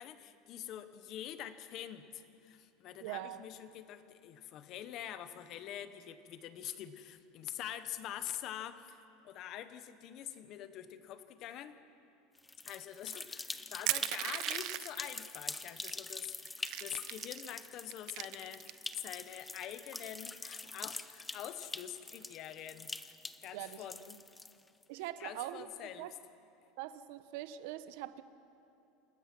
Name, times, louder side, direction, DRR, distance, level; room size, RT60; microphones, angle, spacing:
voice 1, 0.0-11.7 12.7-22.9 23.4-24.2 25.2-26.1, left 11 dB, 35° left, 11 dB, 0.9 m, -45 dB
voice 2, 3.0-3.4 23.5-24.2 24.9-26.1 26.8-28.2, right 13 dB, 60° right, 13 dB, 0.9 m, -43 dB
sound 1, 12.4-24.8, left 2 dB, 10° left, 0.5 m, -45 dB
Crushing, 13.9-15.1 15.8-15.9 16.2-17.5 17.9-19.0, right 17 dB, 45° right, 0.5 m, -37 dB
28.0 x 16.0 x 6.0 m, 2.7 s
supercardioid pair, 165°, 0 cm